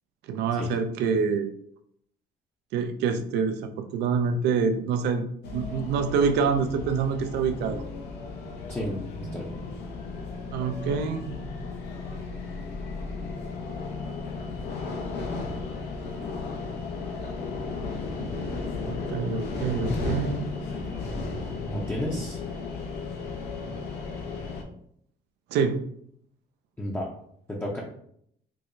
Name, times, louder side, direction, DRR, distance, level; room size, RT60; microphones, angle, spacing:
voice 1, 0.3-1.5 2.7-5.3 5.5-7.8 10.5-11.4 18.9-20.6 25.5-25.8, right 5 dB, 80° right, 7 dB, 0.4 m, -26 dB
sound 1, 5.4-24.6, left 3 dB, 80° left, 0.7 m, -34 dB
voice 2, 8.7-9.5 21.7-22.4 26.8-27.1 27.5-27.8, equal, 10° left, -4 dB, 0.6 m, -32 dB
4.6 x 2.0 x 2.6 m, 0.68 s
cardioid pair, 110°, 17 cm